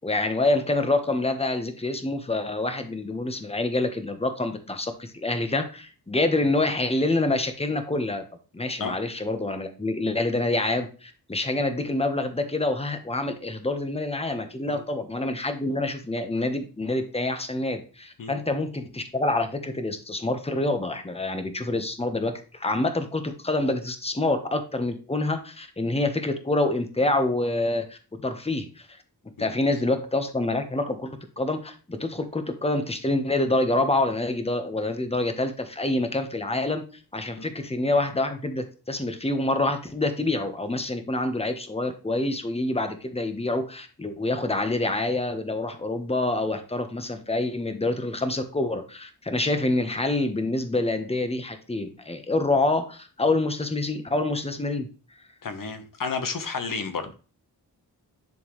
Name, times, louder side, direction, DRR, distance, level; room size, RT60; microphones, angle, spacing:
voice 1, 0.0-8.2 8.5-28.8 29.4-36.8 37.1-54.9, left 2 dB, 15° left, 1.3 m, -26 dB
voice 2, 55.4-57.1, left 5 dB, 55° left, 1.3 m, -31 dB
10.5 x 3.7 x 3.3 m
cardioid pair, 55°, 39 cm